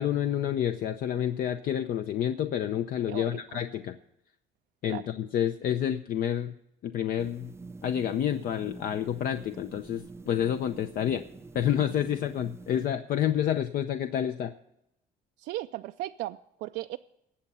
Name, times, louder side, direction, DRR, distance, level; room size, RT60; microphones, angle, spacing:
voice 1, 0.0-4.0 4.8-6.5 6.8-7.5 7.8-11.2 11.5-14.5, left 10 dB, 60° left, 9 dB, 0.6 m, -29 dB
voice 2, 3.1-3.4 4.9-5.0 15.4-17.0, right 15 dB, 80° right, 8 dB, 0.4 m, -36 dB
sound 1, 7.2-12.9, right 3 dB, 15° right, 0.4 m, -47 dB
18.5 x 7.3 x 5.5 m, 0.83 s
cardioid pair, 110°, 17 cm